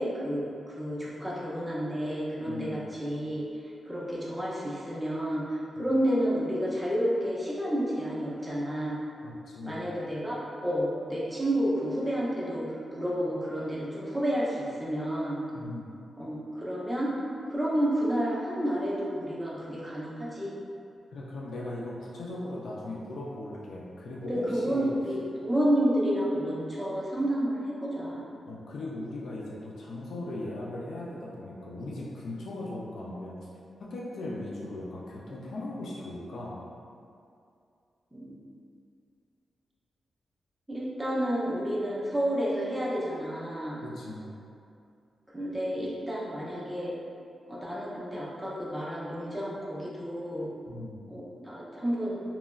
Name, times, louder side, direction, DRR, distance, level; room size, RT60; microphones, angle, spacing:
voice 1, 0.0-3.5 3.9-9.0 9.7-15.4 16.2-17.1 17.5-20.6 24.2-28.2 38.1-38.3 40.7-43.8 45.3-46.9 47.5-50.5 51.1-52.2, equal, 10° right, -7 dB, 0.5 m, -30 dB
voice 2, 2.5-2.8 5.8-5.9 9.2-9.8 15.5-15.9 21.1-24.9 28.5-33.4 33.8-36.6 43.8-44.3 50.7-51.0, left 2 dB, 75° left, -5 dB, 0.4 m, -38 dB
2.9 x 2.3 x 2.2 m, 2.5 s
wide cardioid pair, 130°, 0 cm